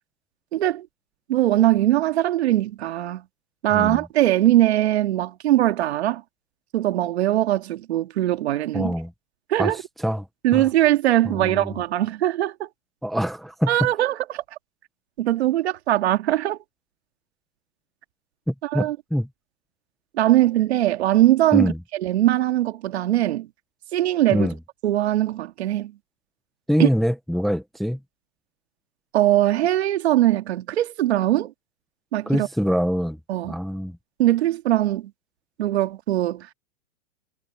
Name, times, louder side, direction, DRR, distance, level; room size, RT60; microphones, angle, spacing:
voice 1, 0.5-0.9 1.3-3.2 3.6-6.2 6.7-8.9 9.5-9.8 10.4-12.7 13.7-14.4 15.2-16.6 18.7-19.0 20.2-23.5 23.9-24.5 24.8-25.9 26.8-26.9 29.1-31.5 32.1-32.5 33.3-33.6 34.2-35.1 35.6-36.5, right 14 dB, 65° right, 2.2 m, -21 dB
voice 2, 8.7-9.1 9.6-10.3 10.5-10.7 11.2-11.8 13.0-13.9 18.5-19.3 21.5-21.8 24.3-24.6 26.7-28.0 32.3-33.2 33.4-34.0, equal, ahead, 0.8 m, -24 dB
supercardioid pair, 165°, 35 cm